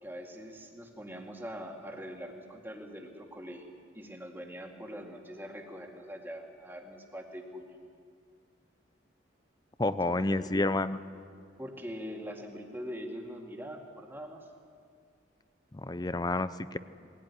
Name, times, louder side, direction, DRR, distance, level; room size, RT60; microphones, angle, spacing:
voice 1, 0.0-3.7 3.9-7.8 10.0-10.2 10.5-10.6 11.6-14.4, equal, 10° right, 2 dB, 2.2 m, -43 dB
voice 2, 9.8-11.0 15.7-16.8, left 2 dB, 20° left, 14 dB, 0.6 m, -29 dB
20.5 x 17.0 x 9.8 m, 2.2 s
head